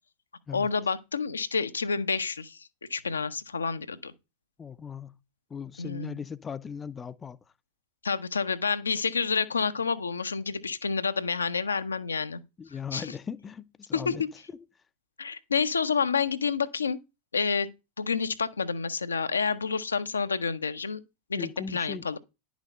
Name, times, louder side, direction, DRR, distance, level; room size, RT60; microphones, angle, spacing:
voice 1, 0.5-4.1 5.8-6.1 8.0-12.4 12.9-13.1 13.9-14.1 15.2-17.0 17.3-17.7 18.0-21.0 21.3-22.2, left 5 dB, 75° left, 0.8 m, -29 dB
voice 2, 4.6-5.2 5.5-7.4 12.6-14.2 14.5-14.6 21.3-22.1, left 6 dB, 20° left, 0.6 m, -38 dB
10.5 x 6.2 x 5.5 m
figure-of-eight pair, 90°, 0 cm